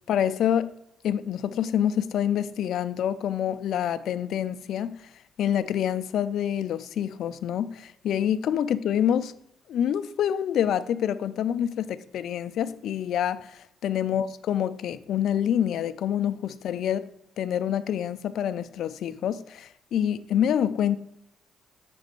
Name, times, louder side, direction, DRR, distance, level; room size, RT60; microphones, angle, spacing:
voice 1, 0.1-0.7 1.0-5.0 5.4-9.3 9.7-17.1 17.4-21.0, left 9 dB, 75° left, 0.3 m, -27 dB
6.0 x 3.3 x 5.1 m
cardioid pair, 90°, 0 cm